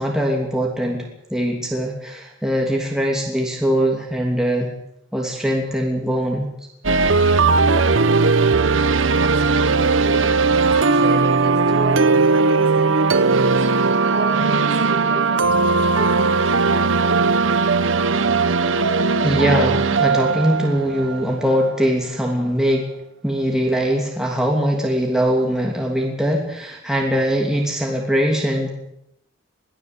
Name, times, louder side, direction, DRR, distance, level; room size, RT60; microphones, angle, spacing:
voice 1, 0.0-4.7 5.1-6.5 19.2-22.9 23.2-28.7, equal, 5° right, -1 dB, 2.9 m, -21 dB
sound 1, 6.8-21.7, right 4 dB, 80° right, 1.0 m, -18 dB
voice 2, 9.2-13.6 14.0-16.8, right 2 dB, 55° right, 0 dB, 7.6 m, -31 dB
22.0 x 15.5 x 8.1 m, 0.79 s
head